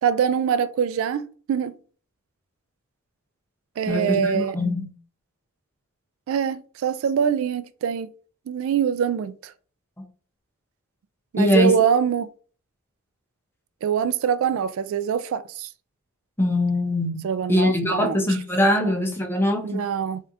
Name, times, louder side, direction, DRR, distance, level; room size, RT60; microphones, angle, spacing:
voice 1, 0.0-1.7 3.8-4.6 6.3-8.1 8.5-9.5 11.3-12.3 13.8-15.7 17.2-18.2 18.8-18.9 19.6-20.2, right 8 dB, 70° right, 0.3 m, -24 dB
voice 2, 3.9-4.8 11.3-11.7 16.4-19.8, left 1 dB, 10° left, 0.8 m, -22 dB
3.6 x 3.2 x 2.7 m
head